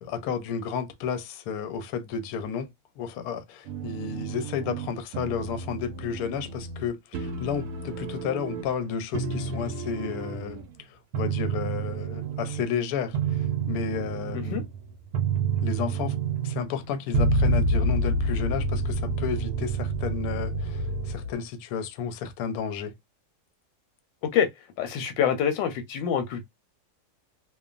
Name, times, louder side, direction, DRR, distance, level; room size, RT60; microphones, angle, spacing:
voice 1, 0.0-2.7 3.0-14.6 15.6-16.2 16.4-22.9, left 7 dB, 70° left, 0.9 m, -32 dB
sound 1, 3.7-4.9 5.1-6.9 7.1-8.8 9.1-10.7 11.1-12.7 13.1-21.3, right 3 dB, 70° right, 1.0 m, -29 dB
voice 2, 24.8-26.4, left 8 dB, 85° left, 1.3 m, -26 dB
2.9 x 2.1 x 2.4 m
omnidirectional pair, 2.0 m